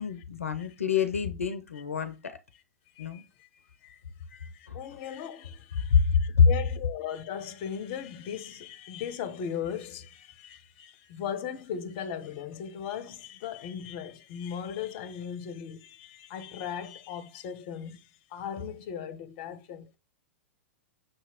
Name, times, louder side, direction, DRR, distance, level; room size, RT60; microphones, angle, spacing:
voice 1, 0.0-2.4 3.0-3.2 4.3-4.8 5.0-5.2 5.9-6.5, left 6 dB, 85° left, 0.5 m, -26 dB
voice 2, 3.0-3.5 3.8-4.0 4.6-20.0, left 8 dB, 50° left, 0.7 m, -38 dB
6.4 x 2.9 x 2.8 m
hypercardioid pair, 105°, 7 cm